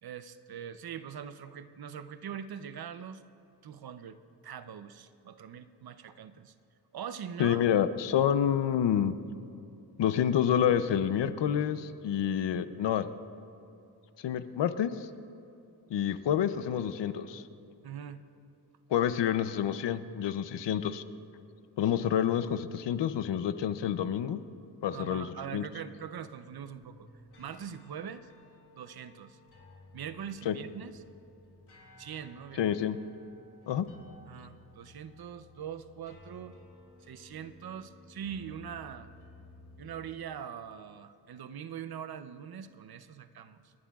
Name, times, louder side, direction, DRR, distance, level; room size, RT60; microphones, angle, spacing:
voice 1, 0.0-3.2 3.6-4.2 4.4-6.5 6.9-7.6 17.8-18.2 24.9-27.1 27.4-28.3 28.8-29.4 29.9-31.0 32.0-32.8 34.3-36.6 37.1-39.1 39.8-43.7, right 8 dB, 60° right, 12 dB, 0.7 m, -42 dB
voice 2, 7.4-9.1 10.0-13.1 14.2-15.1 15.9-17.4 18.9-21.0 21.8-24.4 24.8-25.6 30.5-30.6 32.6-33.0 33.7-33.9, left 9 dB, 85° left, 12 dB, 0.7 m, -28 dB
sound 1, 26.5-40.2, left 2 dB, 70° left, 3.1 m, -56 dB
28.5 x 11.5 x 2.4 m, 2.7 s
wide cardioid pair, 105°, 42 cm